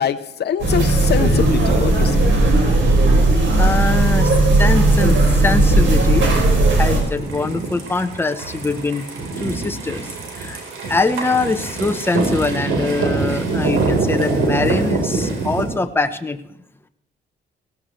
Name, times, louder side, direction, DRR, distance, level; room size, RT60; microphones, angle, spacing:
voice 1, 0.0-2.2, left 8 dB, 55° left, 11 dB, 0.8 m, -23 dB
sound 1, 0.6-7.0, right 2 dB, 70° right, 5.5 m, -15 dB
voice 2, 3.6-6.3 6.7-9.1 9.4-10.6 10.9-16.4, left 3 dB, 10° left, 7 dB, 0.9 m, -23 dB
sound 2, 4.8-15.6, right 3 dB, 90° right, 4.4 m, -25 dB
17.0 x 16.5 x 3.3 m, 0.73 s
cardioid pair, 90°, 20 cm